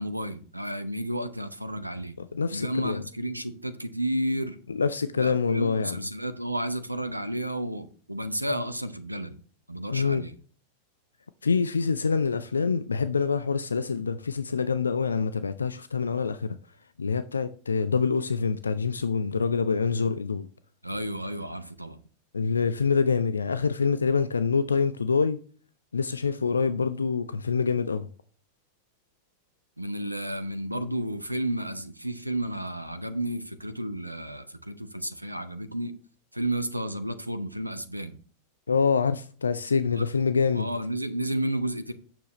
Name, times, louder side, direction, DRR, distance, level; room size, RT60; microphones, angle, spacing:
voice 1, 0.0-2.2 2.5-4.6 5.2-9.4 9.7-10.3 20.8-22.0 29.8-35.9 36.3-38.2 40.0-40.1 40.5-41.9, right 1 dB, 85° right, 0.6 m, -32 dB
voice 2, 2.2-3.0 4.7-6.0 9.9-10.2 11.4-16.6 17.0-20.5 22.3-25.4 25.9-28.1 38.7-40.7, left 5 dB, 75° left, 0.3 m, -26 dB
8.9 x 6.9 x 3.0 m
figure-of-eight pair, 90°, 0 cm